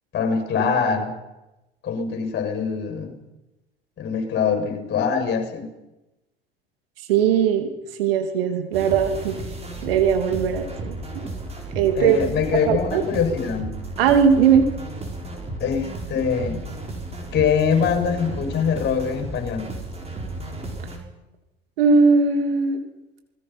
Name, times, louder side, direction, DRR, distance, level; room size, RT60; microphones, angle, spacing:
voice 1, 0.1-1.1 1.8-3.1 4.0-5.7 10.4-10.5 12.0-13.7 15.6-16.6 17.3-19.7, left 6 dB, 35° left, 6 dB, 7.0 m, -23 dB
voice 2, 7.1-7.7 8.0-9.4 9.8-11.3 11.7-12.2 12.6-13.0 14.0-14.7 21.8-22.8, right 6 dB, 65° right, 6 dB, 2.9 m, -19 dB
sound 1, 8.7-21.0, right 2 dB, 20° right, 6.1 m, -33 dB
29.0 x 20.5 x 5.9 m, 0.98 s
figure-of-eight pair, 65°, 31 cm